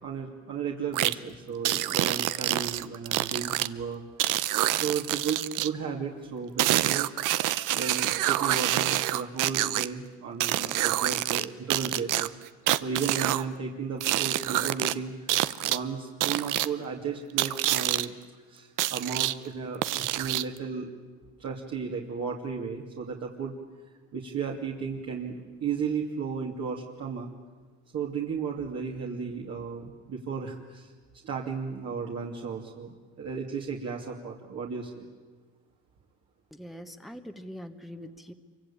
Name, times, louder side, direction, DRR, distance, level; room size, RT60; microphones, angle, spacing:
voice 1, 0.0-4.0 4.7-7.1 7.7-12.3 12.8-18.1 18.5-20.9 21.4-23.5 24.1-27.3 27.9-30.9 31.2-35.1, right 6 dB, 55° right, -2 dB, 2.7 m, -34 dB
sound 1, 0.9-1.1 1.7-3.7 4.2-5.7 6.6-9.9 10.4-11.5 11.7-13.4 14.0-14.9 15.3-15.8 16.2-16.7 17.4-18.1 18.8-19.3 19.8-20.6, right 15 dB, 85° right, 0.8 m, -27 dB
voice 2, 36.5-38.3, equal, ahead, 6 dB, 1.3 m, -43 dB
26.5 x 24.0 x 8.7 m, 1.4 s
cardioid pair, 110°, 31 cm